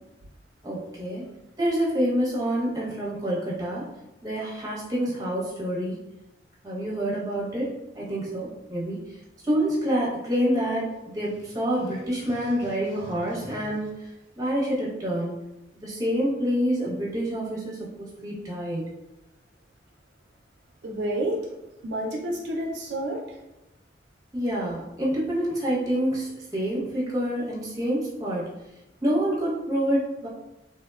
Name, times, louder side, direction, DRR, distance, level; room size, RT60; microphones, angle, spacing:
voice 1, 0.6-1.2 1.6-3.9 4.2-6.0 6.6-9.0 9.4-13.9 14.4-15.4 15.8-17.8 18.2-18.9 24.3-28.5 29.0-30.3, equal, 20° right, -7 dB, 0.7 m, -27 dB
voice 2, 20.8-21.5 21.8-23.2, right 1 dB, 70° right, 0 dB, 0.4 m, -29 dB
2.9 x 2.1 x 2.2 m, 0.96 s
head